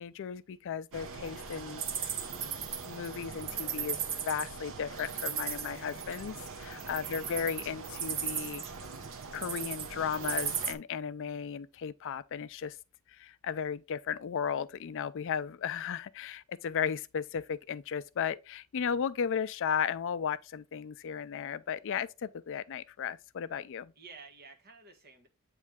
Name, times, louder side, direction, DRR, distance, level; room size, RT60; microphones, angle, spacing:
voice 1, 0.0-2.2 2.8-8.6 9.3-12.8 13.1-23.9, left 7 dB, 60° left, 0.4 m, -35 dB
sound 1, 0.9-10.7, right 7 dB, 60° right, 0.9 m, -37 dB
voice 2, 6.5-6.9 23.9-25.3, right 4 dB, 45° right, 1.4 m, -52 dB
8.4 x 3.2 x 3.5 m
head